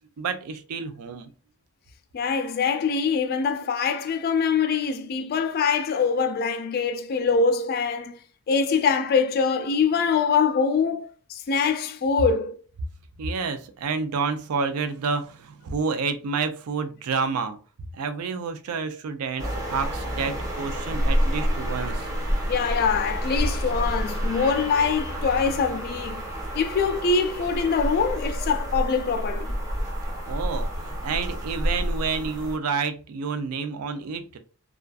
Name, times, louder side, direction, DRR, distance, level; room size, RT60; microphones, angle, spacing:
voice 1, 0.2-1.3 13.2-17.6 17.9-22.1 30.3-34.4, right 5 dB, 80° right, 0.4 m, -29 dB
voice 2, 2.1-8.2 8.5-12.6 22.5-26.2 26.5-29.5, left 5 dB, 45° left, 0.3 m, -24 dB
sound 1, 19.4-32.6, equal, 15° right, 0.9 m, -29 dB
2.4 x 2.3 x 2.2 m
head